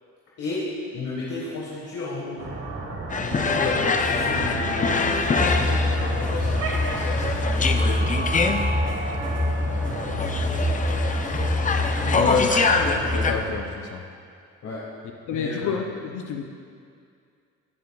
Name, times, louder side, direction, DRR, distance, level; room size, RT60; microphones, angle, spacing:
voice 1, 0.9-2.5 3.1-8.3 9.7-10.4 12.0-12.2 14.6-14.9 15.3-15.8, left 3 dB, 55° left, -5 dB, 1.5 m, -33 dB
sound 1, 2.4-13.5, right 2 dB, 60° right, 1.6 m, -31 dB
sound 2, 3.1-13.3, left 4 dB, 25° left, 0.5 m, -25 dB
sound 3, 5.3-13.4, left 2 dB, 5° left, 2.3 m, -26 dB
voice 2, 12.2-12.5 12.8-14.0 15.3-16.5, left 6 dB, 80° left, 3 dB, 0.8 m, -28 dB
17.0 x 6.7 x 2.3 m, 2.3 s
cardioid pair, 90°, 30 cm